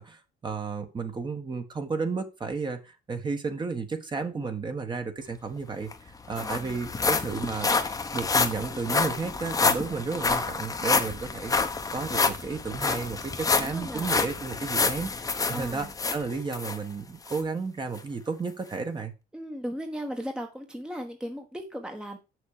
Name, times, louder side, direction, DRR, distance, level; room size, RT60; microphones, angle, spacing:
voice 1, 0.0-7.7 8.1-15.1 15.5-19.1, right 4 dB, 25° right, 6 dB, 1.4 m, -33 dB
sound 1, 5.6-5.7 5.9-16.8 17.3-17.4 18.0-18.1, left 4 dB, 20° left, 1.0 m, -28 dB
voice 2, 6.3-6.8 13.5-14.1 15.5-15.9 19.3-22.2, equal, 5° right, 4 dB, 1.1 m, -37 dB
6.8 x 6.4 x 4.9 m, 0.29 s
cardioid pair, 110°, 17 cm